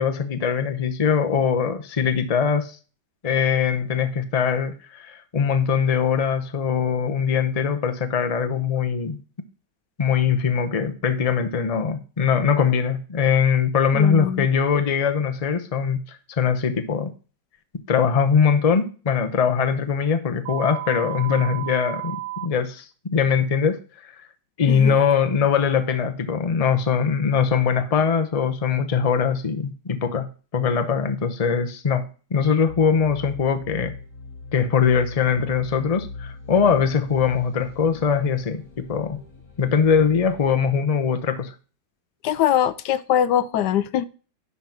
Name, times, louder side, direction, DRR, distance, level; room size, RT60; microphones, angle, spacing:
voice 1, 0.0-2.8 3.2-9.2 10.0-17.1 17.9-23.8 24.6-30.3 30.5-32.0 32.3-33.9 34.5-39.2 39.6-41.5, left 6 dB, 30° left, 0.6 m, -22 dB
voice 2, 13.9-14.5 24.7-25.0 42.2-44.0, left 10 dB, 70° left, 1.1 m, -22 dB
sound 1, 20.5-22.5, right 18 dB, 80° right, 1.3 m, -32 dB
sound 2, 32.7-40.6, left 3 dB, 50° left, 3.7 m, -40 dB
11.5 x 4.1 x 6.0 m
omnidirectional pair, 2.0 m